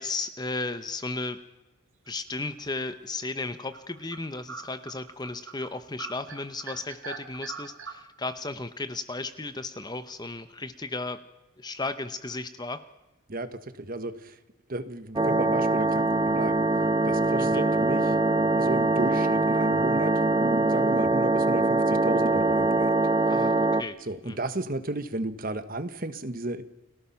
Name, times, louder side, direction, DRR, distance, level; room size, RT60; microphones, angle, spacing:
voice 1, 0.0-1.4 2.1-11.2 11.6-12.8 17.4-17.6 23.3-24.0 24.2-24.4, left 3 dB, 20° left, 11 dB, 0.8 m, -35 dB
sound 1, 2.4-2.8 3.3-3.4 3.7-5.7 6.0-8.0, right 5 dB, 60° right, 2.5 m, -41 dB
voice 2, 13.3-14.4 14.7-16.7 17.0-18.1 18.6-23.0 24.1-26.6, right 2 dB, 40° right, 10 dB, 1.3 m, -33 dB
sound 2, 15.2-23.8, right 2 dB, 20° right, 0.7 m, -23 dB
30.0 x 18.5 x 5.8 m, 1.0 s
head